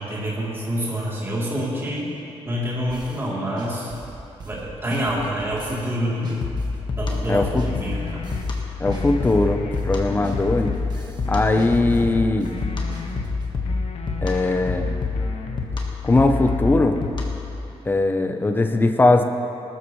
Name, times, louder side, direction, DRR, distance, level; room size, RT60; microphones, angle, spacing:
voice 1, 0.0-2.1 2.4-3.9 4.4-6.4 6.9-8.1, equal, 25° right, -6 dB, 3.2 m, -27 dB
sound 1, 2.9-3.3 3.6-5.9 6.2-8.6 8.9-11.3 11.6-13.6, right 3 dB, 40° right, 1.3 m, -40 dB
music game bgm, 6.4-17.5, left 3 dB, 45° left, 1.5 m, -27 dB
voice 2, 7.3-7.6 8.8-10.7 11.3-12.5 14.2-14.9 16.0-17.0 17.8-19.2, left 2 dB, 20° left, 5 dB, 0.7 m, -20 dB
sound 2, 7.7-8.4 8.8-10.9 11.2-13.2 13.6-15.7 16.0-17.3, left 4 dB, 85° left, 1.0 m, -37 dB
19.5 x 13.0 x 3.2 m, 2.8 s
wide cardioid pair, 170°, 11 cm